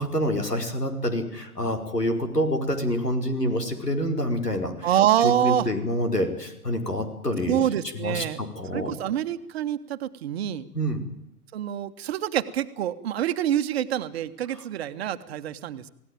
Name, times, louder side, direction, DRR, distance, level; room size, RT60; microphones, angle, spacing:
voice 1, 0.0-4.9 5.2-7.7 7.9-8.9 10.7-11.0 14.5-14.6, equal, 85° left, 6 dB, 5.0 m, -27 dB
voice 2, 4.8-5.7 7.5-8.4 8.7-10.7 11.5-15.9, right 11 dB, 40° right, 10 dB, 1.5 m, -26 dB
28.0 x 18.0 x 9.2 m, 0.85 s
figure-of-eight pair, 115°, 47 cm